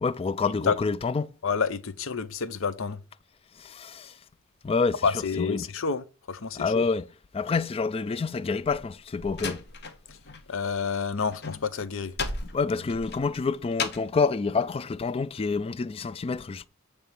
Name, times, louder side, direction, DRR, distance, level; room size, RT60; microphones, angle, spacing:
voice 1, 0.0-1.3 3.6-4.1 4.6-5.0 5.4-5.7 6.5-7.1 7.3-9.6 12.5-16.7, left 4 dB, 25° left, 0.3 m, -27 dB
voice 2, 1.4-3.0 5.0-6.9 10.5-12.1, left 5 dB, 65° left, 0.7 m, -29 dB
Slam, 8.6-10.5 10.7-14.2, left 4 dB, 50° left, 1.1 m, -36 dB
9.0 x 3.4 x 6.8 m
head